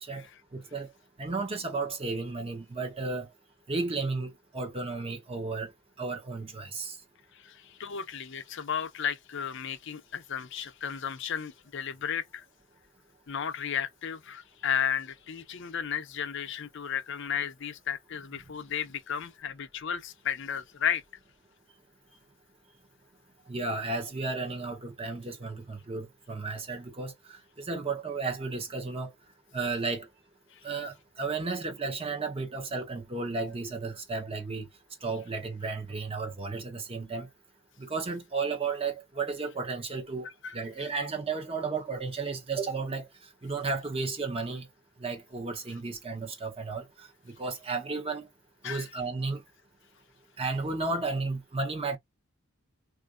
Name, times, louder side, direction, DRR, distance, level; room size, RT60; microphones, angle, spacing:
voice 1, 0.0-0.9 1.2-3.3 3.7-5.7 6.0-7.0 23.5-29.1 29.5-30.1 30.6-34.7 35.0-37.3 37.8-44.7 45.0-48.3 48.6-49.4 50.4-52.0, right 4 dB, 25° right, 0.8 m, -33 dB
voice 2, 7.3-12.4 13.3-21.0 40.4-40.6 48.6-48.8, left 8 dB, 60° left, 0.6 m, -34 dB
3.8 x 2.5 x 2.4 m
head